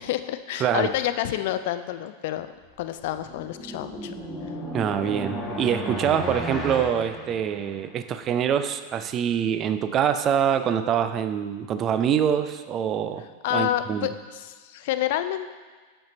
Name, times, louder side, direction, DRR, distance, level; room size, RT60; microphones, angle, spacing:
voice 1, 0.0-2.5 2.8-4.1 13.4-15.5, left 12 dB, 50° left, 11 dB, 0.4 m, -28 dB
voice 2, 0.6-0.9 4.7-13.3 13.5-14.1, right 8 dB, 30° right, 10 dB, 0.5 m, -25 dB
sound 1, 2.8-8.0, equal, 15° left, 1.4 m, -34 dB
7.9 x 6.6 x 3.9 m, 1.5 s
figure-of-eight pair, 90°, 0 cm